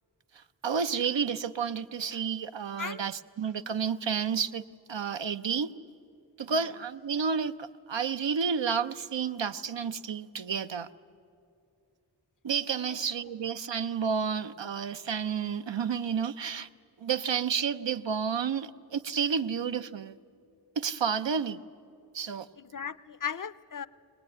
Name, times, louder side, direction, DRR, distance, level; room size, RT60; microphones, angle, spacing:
voice 1, 0.3-4.6 4.9-5.7 6.4-10.9 12.4-16.7 17.0-20.2 20.8-21.6 22.1-22.5, right 6 dB, 75° right, 10 dB, 0.7 m, -31 dB
voice 2, 12.8-13.3 22.6-23.9, left 7 dB, 45° left, 15 dB, 0.6 m, -38 dB
21.0 x 19.5 x 9.7 m, 2.4 s
wide cardioid pair, 45°, 44 cm